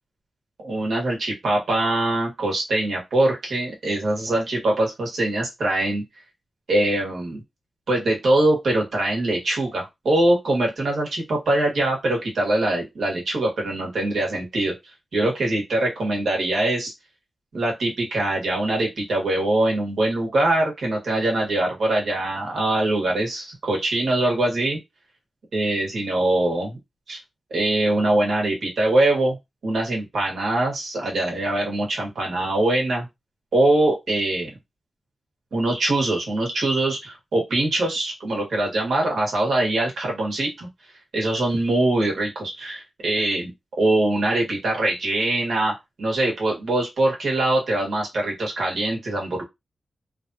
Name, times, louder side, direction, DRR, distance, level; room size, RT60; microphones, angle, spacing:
voice 1, 0.6-6.0 6.7-7.4 7.9-14.7 15.1-16.9 17.5-24.8 25.5-26.8 27.1-27.2 27.5-29.4 29.6-33.1 33.5-34.5 35.5-40.7 41.1-49.4, right 1 dB, 90° right, -1 dB, 1.3 m, -23 dB
3.2 x 2.4 x 2.7 m, 0.20 s
wide cardioid pair, 115°, 0 cm